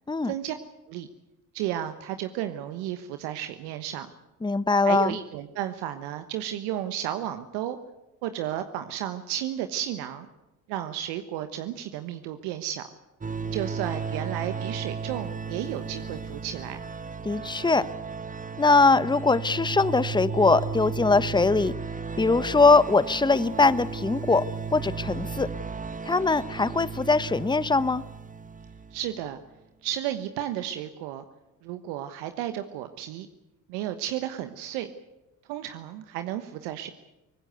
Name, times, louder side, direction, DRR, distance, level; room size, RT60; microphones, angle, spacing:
voice 1, 0.2-0.5 0.9-1.1 1.5-4.1 4.8-7.8 8.2-10.3 10.7-12.8 13.5-16.8 28.9-29.4 29.8-31.2 31.6-33.3 33.7-34.9 35.5-36.9, right 12 dB, 70° right, 9 dB, 1.3 m, -33 dB
voice 2, 4.4-5.2 17.2-17.9 18.6-21.7 22.2-25.5 26.0-28.0, left 3 dB, 10° left, 16 dB, 1.0 m, -22 dB
sound 1, 13.2-29.1, right 5 dB, 20° right, 1.2 m, -35 dB
23.5 x 19.5 x 8.1 m, 0.98 s
hypercardioid pair, 55°, 41 cm